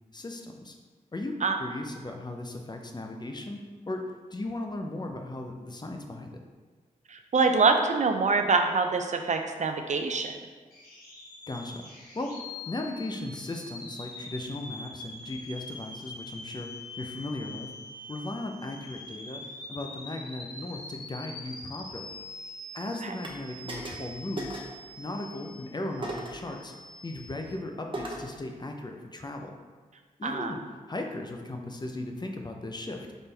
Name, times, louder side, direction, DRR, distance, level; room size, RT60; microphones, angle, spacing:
voice 1, 0.1-0.8 1.1-4.0 4.3-6.3 11.5-11.9 12.1-12.3 12.7-16.7 17.0-17.7 18.1-19.4 19.7-22.1 22.7-24.6 25.0-26.7 27.0-29.6 30.2-30.6 30.9-33.1, left 2 dB, 30° left, 3 dB, 0.6 m, -37 dB
voice 2, 7.1-10.3 23.0-23.1 30.2-30.5, right 4 dB, 50° right, 5 dB, 0.5 m, -25 dB
sound 1, 10.7-27.5, left 2 dB, 85° left, 1.3 m, -44 dB
sound 2, 23.2-23.4 23.7-24.1 24.4-24.8 26.0-26.5 27.9-28.3, right 1 dB, 35° right, 0.9 m, -37 dB
4.3 x 3.3 x 3.4 m, 1.4 s
cardioid pair, 45°, 15 cm